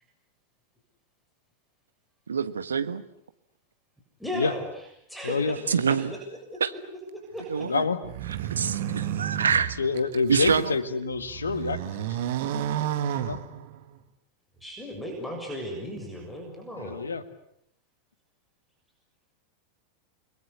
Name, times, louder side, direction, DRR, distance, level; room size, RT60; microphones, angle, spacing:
voice 1, 2.3-3.0 5.7-6.1 6.6-6.7 7.5-7.8 8.5-9.8 10.3-10.7, right 6 dB, 70° right, 1.4 m, -25 dB
voice 2, 4.2-4.7 5.1-5.6 5.9-6.1 6.5-6.6 7.1-7.7 14.6-17.0, equal, ahead, 7.0 m, -35 dB
voice 3, 5.2-5.6 7.6-8.0 9.8-12.3 13.1-13.4 16.8-17.2, left 4 dB, 75° left, 1.9 m, -27 dB
sound 1, 8.0-10.7 11.1-14.0, right 10 dB, 50° right, 1.9 m, -31 dB
30.0 x 22.0 x 8.4 m
figure-of-eight pair, 90°, 0 cm